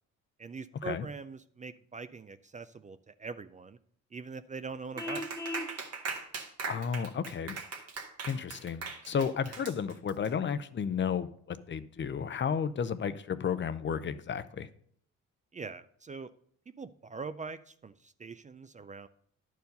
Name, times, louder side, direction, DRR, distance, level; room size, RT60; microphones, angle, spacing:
voice 1, 0.4-3.8 4.1-5.2 15.5-16.3 16.7-19.1, right 4 dB, 25° right, 0.4 m, -42 dB
Vehicle horn car horn honking, 5.0-5.7, left 2 dB, 10° left, 0.8 m, -37 dB
Clapping, 5.0-10.3, right 5 dB, 55° right, 1.6 m, -40 dB
voice 2, 6.7-7.6 8.2-14.7, left 7 dB, 40° left, 0.6 m, -33 dB
11.0 x 4.7 x 5.3 m
cardioid pair, 90°, 30 cm